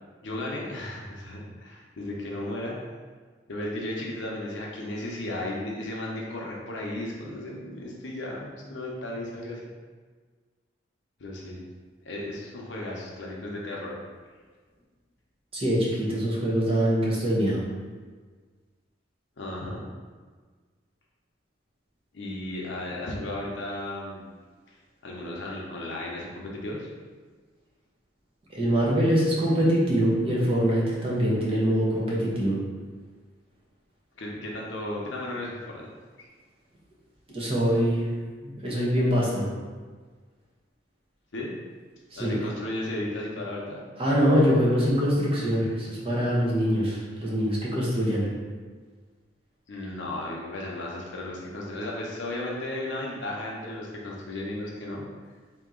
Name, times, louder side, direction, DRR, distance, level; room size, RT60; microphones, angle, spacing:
voice 1, 0.2-2.8 3.5-9.6 11.2-11.6 12.0-14.0 19.4-19.9 22.1-24.2 24.7-24.8 25.0-26.9 34.2-35.9 41.3-41.5 42.2-43.8 49.7-55.0, left 1 dB, 75° left, -3 dB, 0.7 m, -34 dB
voice 2, 15.5-17.6 28.5-32.6 37.3-38.1 38.4-39.5 42.1-42.4 44.0-48.3, equal, 30° right, -5 dB, 1.0 m, -24 dB
3.6 x 2.9 x 3.7 m, 1.5 s
head